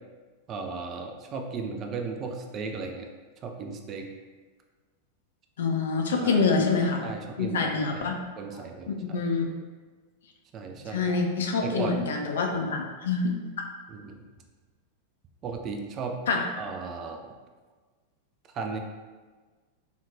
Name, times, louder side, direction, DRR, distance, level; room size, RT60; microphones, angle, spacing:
voice 1, 0.5-3.1 3.4-4.1 6.1-6.6 7.0-8.0 8.4-9.2 10.5-11.2 11.6-12.0 13.9-14.2 15.4-16.2 16.6-17.3 18.5-18.8, right 4 dB, 30° right, 3 dB, 0.3 m, -36 dB
voice 2, 5.6-7.1 7.4-8.1 8.9-9.5 10.9-13.3 16.3-16.4, left 4 dB, 60° left, 2 dB, 0.3 m, -26 dB
2.8 x 2.3 x 2.3 m, 1.4 s
figure-of-eight pair, 90°, 0 cm